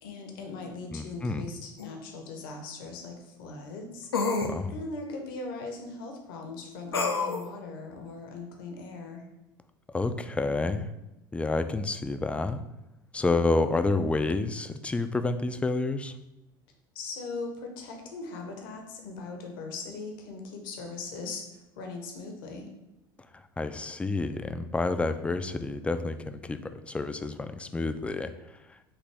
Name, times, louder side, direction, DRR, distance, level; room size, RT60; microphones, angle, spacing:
voice 1, 0.0-4.3 4.7-9.2 16.9-22.7, left 3 dB, 65° left, 3 dB, 0.9 m, -40 dB
voice 2, 0.9-1.5 4.4-4.8 9.9-10.9 11.3-12.6 13.1-16.1 23.6-26.6 26.9-28.3, left 3 dB, 10° left, 9 dB, 0.3 m, -29 dB
sound 1, 1.8-1.9 4.1-4.5 6.9-7.5, left 4 dB, 85° left, 0.5 m, -27 dB
6.0 x 2.7 x 3.3 m, 0.92 s
figure-of-eight pair, 70°, 12 cm